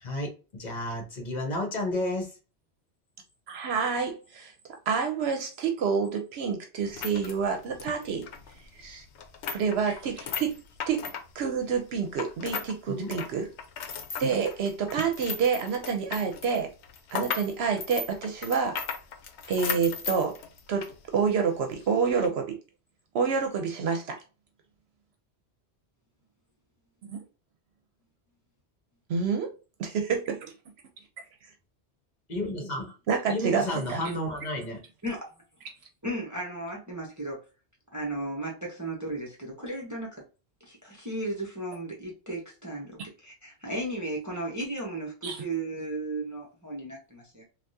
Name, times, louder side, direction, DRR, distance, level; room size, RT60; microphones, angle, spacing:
voice 1, 0.0-2.4 12.9-13.1 32.3-33.0 33.3-34.8, left 1 dB, 45° left, 1.1 m, -32 dB
voice 2, 3.5-4.5 4.9-8.3 8.7-9.0 9.5-10.6 10.9-11.1 11.3-13.5 14.2-16.7 17.1-18.8 19.5-20.4 20.7-22.6 23.1-24.2 29.1-29.5 29.8-30.4 33.1-34.0 45.2-45.4, right 6 dB, 70° right, 0.8 m, -28 dB
sound 1, 6.8-12.7 13.0-21.0 21.3-21.4 22.0-22.3, left 6 dB, 80° left, 0.9 m, -36 dB
voice 3, 36.0-37.4 37.9-39.3 39.6-40.2 40.6-47.4, right 1 dB, 20° right, 0.7 m, -35 dB
3.4 x 2.3 x 2.6 m
omnidirectional pair, 1.1 m